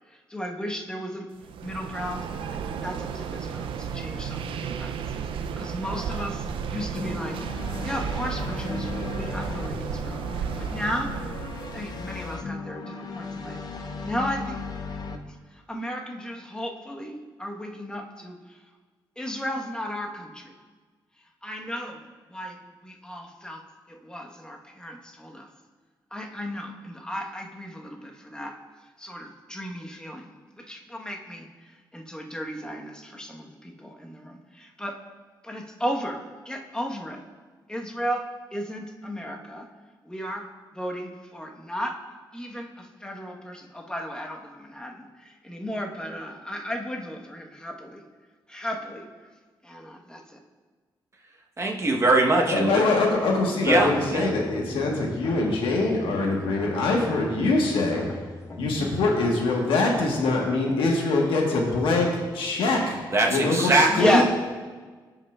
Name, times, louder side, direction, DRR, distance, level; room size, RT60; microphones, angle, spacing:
voice 1, 0.3-1.3 1.6-2.2 2.5-7.4 7.8-11.1 11.7-13.6 14.0-14.6 15.2-18.4 19.2-20.5 21.4-22.0 22.3-23.6 23.9-25.5 26.1-28.6 29.0-31.5 31.9-35.0 35.4-37.2 37.7-39.7 40.0-40.5 40.7-42.0 42.3-48.0 48.5-49.0 49.6-50.4 63.9-64.2, equal, 10° left, 1 dB, 1.2 m, -34 dB
sound 1, 1.4-12.2, right 7 dB, 85° right, 0.4 m, -33 dB
sound 2, 6.9-15.2, left 4 dB, 50° left, 0.6 m, -36 dB
voice 2, 51.6-52.8 53.6-54.3 63.1-64.2, right 2 dB, 35° right, 0 dB, 1.0 m, -22 dB
voice 3, 52.3-58.0 58.6-62.1 62.3-63.0 63.3-64.2, left 3 dB, 90° left, 0 dB, 1.3 m, -23 dB
sound 3, 53.6-58.9, left 2 dB, 35° left, 1.3 m, -40 dB
15.0 x 5.5 x 2.4 m, 1.4 s
cardioid pair, 70°, 9 cm